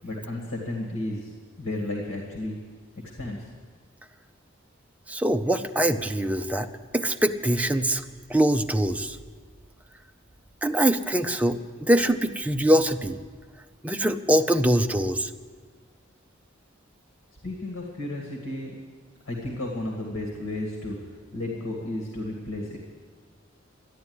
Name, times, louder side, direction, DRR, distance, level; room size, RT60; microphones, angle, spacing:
voice 1, 0.0-1.3 1.6-2.6 3.2-3.5 17.4-18.7 19.3-22.8, left 1 dB, 80° left, 0 dB, 2.1 m, -33 dB
voice 2, 5.1-6.7 6.9-8.0 8.3-9.2 10.6-13.2 13.8-15.3, right 1 dB, 5° right, 6 dB, 0.6 m, -23 dB
13.0 x 9.9 x 9.5 m, 1.5 s
head